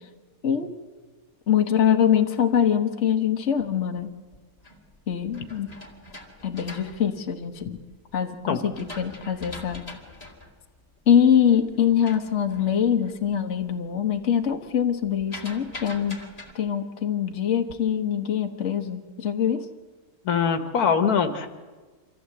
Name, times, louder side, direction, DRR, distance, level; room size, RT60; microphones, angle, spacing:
voice 1, 1.5-4.1 5.1-5.7 6.4-7.8 8.1-9.8 11.1-16.2 16.5-19.6, left 8 dB, 50° left, 5 dB, 1.5 m, -23 dB
sound 1, 4.1-7.9 8.4-13.3 13.6-14.0 14.3-16.5, left 2 dB, 25° left, 2.7 m, -43 dB
voice 2, 20.3-21.5, left 6 dB, 80° left, 8 dB, 1.7 m, -22 dB
25.0 x 14.5 x 7.9 m, 1.4 s
omnidirectional pair, 1.6 m